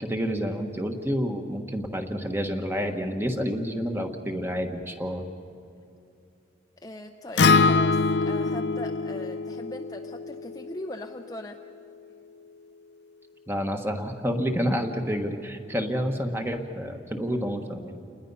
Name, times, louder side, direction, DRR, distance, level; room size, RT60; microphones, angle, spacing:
voice 1, 0.0-5.2 13.5-18.0, equal, 15° right, 4 dB, 1.4 m, -29 dB
voice 2, 6.8-11.6, left 1 dB, 20° left, 4 dB, 0.6 m, -40 dB
Acoustic guitar, 7.4-11.6, left 4 dB, 70° left, 0.5 m, -24 dB
29.0 x 20.5 x 5.6 m, 2.6 s
head